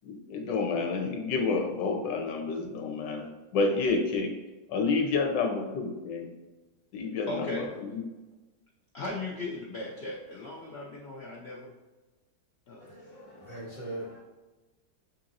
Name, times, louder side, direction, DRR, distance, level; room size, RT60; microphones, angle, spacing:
voice 1, 0.0-4.3 4.7-6.3 6.9-8.0, left 4 dB, 70° left, 2 dB, 1.4 m, -29 dB
voice 2, 7.3-7.8 8.9-11.7 12.7-12.9, left 2 dB, 90° left, -5 dB, 0.5 m, -37 dB
voice 3, 12.8-14.2, right 1 dB, 20° left, -8 dB, 1.4 m, -41 dB
7.3 x 2.8 x 2.5 m, 1.2 s
omnidirectional pair, 2.0 m